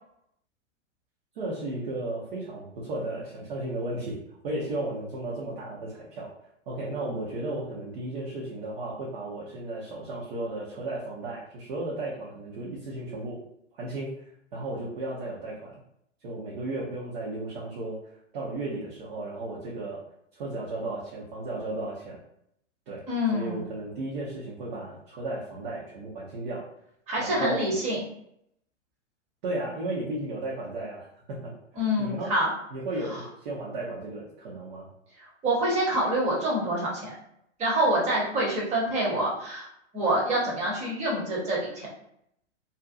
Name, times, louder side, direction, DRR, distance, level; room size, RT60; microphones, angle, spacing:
voice 1, 1.3-4.2 4.4-6.3 6.7-13.4 13.8-14.1 14.5-15.7 16.2-18.0 18.3-20.0 20.4-22.2 22.9-23.0 23.3-26.6 27.2-27.7 29.4-31.5 32.0-32.3 32.7-34.9, right 2 dB, 45° right, -5 dB, 0.7 m, -34 dB
voice 2, 23.1-23.6 27.1-28.0 31.8-32.5 33.1-33.2 35.4-37.1 37.6-39.7 39.9-41.9, right 1 dB, 20° right, -4 dB, 0.9 m, -26 dB
2.5 x 2.2 x 2.5 m, 0.75 s
hypercardioid pair, 115°, 38 cm